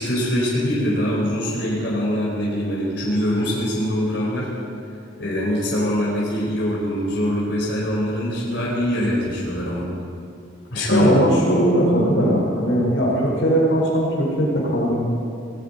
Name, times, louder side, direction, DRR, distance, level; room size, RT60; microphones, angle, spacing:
voice 1, 0.0-4.5 5.2-9.9 10.7-11.2, equal, 60° left, -6 dB, 4.1 m, -23 dB
voice 2, 10.9-14.9, equal, 75° left, -3 dB, 4.5 m, -19 dB
19.0 x 18.0 x 4.1 m, 2.5 s
head